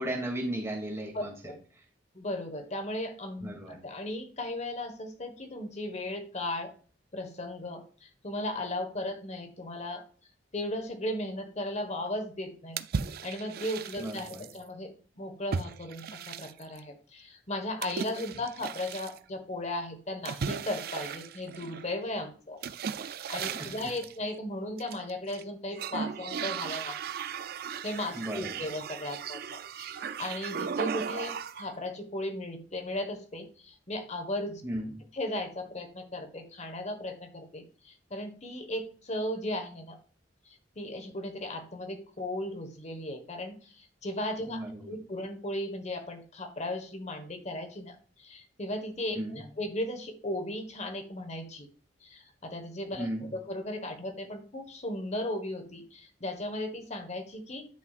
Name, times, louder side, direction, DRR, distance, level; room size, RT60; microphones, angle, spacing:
voice 1, 0.0-1.3 3.4-3.8 14.0-14.4 23.4-23.7 28.1-28.5 34.6-34.9 44.5-44.9 49.2-49.4 53.0-53.3, right 1 dB, 15° right, -2 dB, 2.5 m, -35 dB
voice 2, 1.1-1.6 2.1-6.7 7.1-10.0 10.5-12.8 13.2-22.6 22.9-27.0 27.8-34.6 35.1-40.0 40.4-51.7 52.0-57.7, left 1 dB, 40° left, 7 dB, 1.4 m, -36 dB
sound 1, 12.8-14.6 15.5-16.8 17.8-19.2 20.2-21.9 22.6-24.1 24.8-25.4 25.7-31.7, right 6 dB, 55° right, 0.4 m, -36 dB
10.5 x 5.9 x 2.5 m, 0.39 s
head